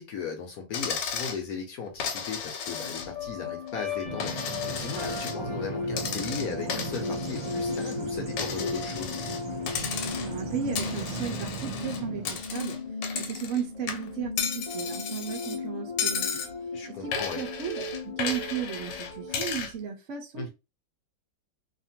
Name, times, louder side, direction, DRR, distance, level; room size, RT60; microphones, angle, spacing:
voice 1, 0.0-9.2 16.7-17.4 20.3-20.5, left 6 dB, 65° left, 1.0 m, -37 dB
Coin (dropping), 0.7-1.4 2.0-3.3 3.7-5.4 5.9-8.0 8.4-9.4 9.7-10.4 10.8-13.6 13.9-15.6 16.0-16.5 17.1-19.7, left 7 dB, 80° left, 1.3 m, -34 dB
sound 1, 2.7-19.4, left 4 dB, 45° left, 0.4 m, -36 dB
Bird vocalization bird call bird song, 4.0-12.4, right 5 dB, 50° right, 1.0 m, -38 dB
voice 2, 10.2-12.8 13.2-16.4 16.9-20.5, right 8 dB, 70° right, 0.7 m, -35 dB
2.8 x 2.5 x 2.7 m
omnidirectional pair, 1.9 m